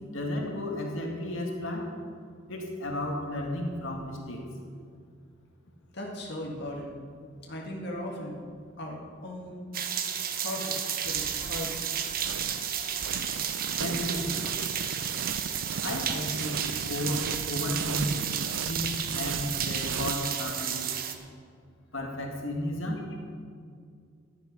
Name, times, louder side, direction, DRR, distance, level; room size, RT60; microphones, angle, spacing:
voice 1, 0.1-1.9 2.5-4.4 13.6-14.5 15.8-18.2 18.7-20.9 21.9-23.1, left 1 dB, 85° left, 1 dB, 2.2 m, -33 dB
voice 2, 5.9-7.0 7.4-8.4 8.8-9.6 10.4-11.9, left 1 dB, 60° left, -1 dB, 1.9 m, -37 dB
sound 1, 9.7-21.1, right 8 dB, 50° right, 1.1 m, -32 dB
sound 2, 11.0-20.1, right 6 dB, 75° right, 0.5 m, -37 dB
14.5 x 11.0 x 5.4 m, 2.3 s
head